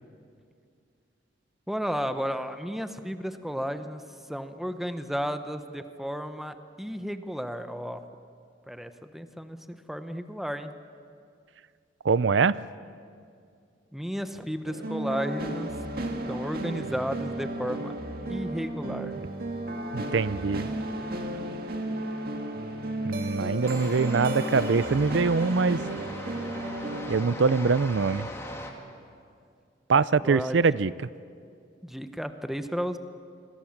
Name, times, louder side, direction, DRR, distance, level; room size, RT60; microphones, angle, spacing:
voice 1, 1.7-4.0 4.3-8.0 8.7-10.7 13.9-15.7 16.3-17.9 18.3-19.2 30.2-30.6 31.8-33.0, equal, ahead, 8 dB, 1.0 m, -33 dB
voice 2, 12.0-12.6 19.9-20.7 23.1-25.8 27.1-28.3 29.9-30.9, right 4 dB, 75° right, 17 dB, 0.5 m, -23 dB
sound 1, 14.7-27.2, right 1 dB, 55° right, 2.1 m, -33 dB
sound 2, 23.6-28.7, left 1 dB, 15° left, 2.5 m, -39 dB
27.5 x 21.5 x 7.3 m, 2.3 s
head